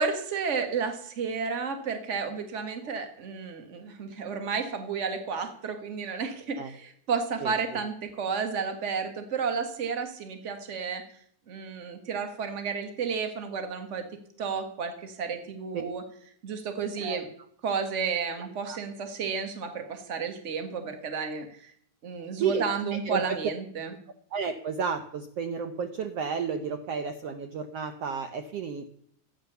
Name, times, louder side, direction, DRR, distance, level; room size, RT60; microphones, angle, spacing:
voice 1, 0.0-11.0 11.5-14.1 14.4-16.0 16.4-17.2 17.6-21.7 22.0-23.9, right 5 dB, 35° right, 6 dB, 1.1 m, -32 dB
voice 2, 23.0-23.4 24.3-28.9, right 6 dB, 85° right, 7 dB, 1.3 m, -32 dB
14.0 x 9.6 x 6.8 m, 0.64 s
omnidirectional pair, 4.0 m